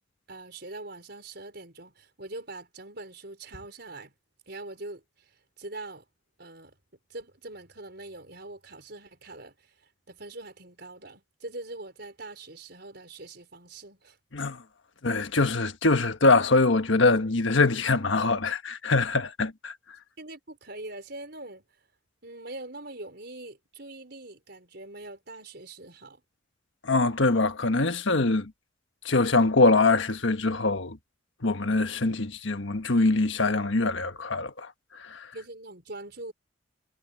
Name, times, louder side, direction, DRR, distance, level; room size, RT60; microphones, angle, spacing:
voice 1, 0.3-4.1 4.5-6.0 6.4-6.8 7.1-9.7 10.1-14.2 20.2-21.6 22.2-26.2 35.3-36.3, right 2 dB, 55° right, 5.3 m, -43 dB
voice 2, 15.0-19.7 26.8-28.5 29.0-31.0 31.4-34.7 35.0-35.3, left 3 dB, 70° left, 1.4 m, -23 dB
head